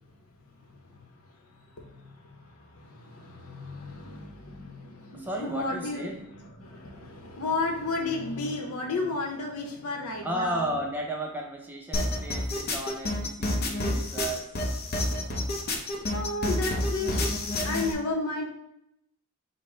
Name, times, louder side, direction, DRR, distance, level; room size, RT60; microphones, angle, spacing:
voice 1, 1.7-10.7 16.1-18.4, left 3 dB, 80° left, 1 dB, 0.8 m, -33 dB
voice 2, 5.1-6.2 10.2-14.5, right 1 dB, 10° right, 0 dB, 0.5 m, -34 dB
sound 1, 11.9-17.9, left 1 dB, 45° left, 0.6 m, -29 dB
5.0 x 2.1 x 3.8 m, 0.80 s
head